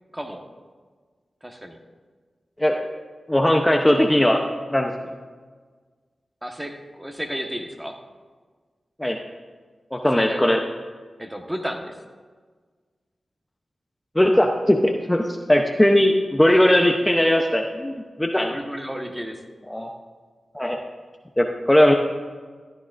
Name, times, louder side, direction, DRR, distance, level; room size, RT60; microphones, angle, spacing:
voice 1, 1.4-1.8 6.4-8.0 10.1-10.5 11.2-12.0 18.5-19.4, equal, 15° right, 3 dB, 1.4 m, -32 dB
voice 2, 3.3-4.4 4.7-4.9 9.0-9.2 9.9-10.6 14.1-15.2 15.5-17.9 18.2-18.5 19.7-19.9 20.5-20.8 21.4-21.9, left 1 dB, 15° left, 2 dB, 0.8 m, -18 dB
14.5 x 9.9 x 2.6 m, 1.5 s
cardioid pair, 40°, 0 cm